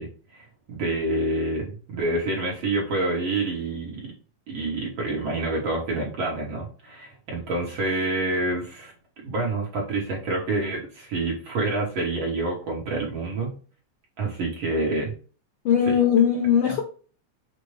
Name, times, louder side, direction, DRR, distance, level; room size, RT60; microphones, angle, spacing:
voice 1, 0.0-4.1 4.5-8.9 9.2-13.5 14.2-15.1 15.9-16.0, right 2 dB, 55° right, 1.6 m, -27 dB
voice 2, 15.6-16.8, left 8 dB, 80° left, 1.2 m, -19 dB
6.5 x 2.2 x 3.2 m
omnidirectional pair, 3.3 m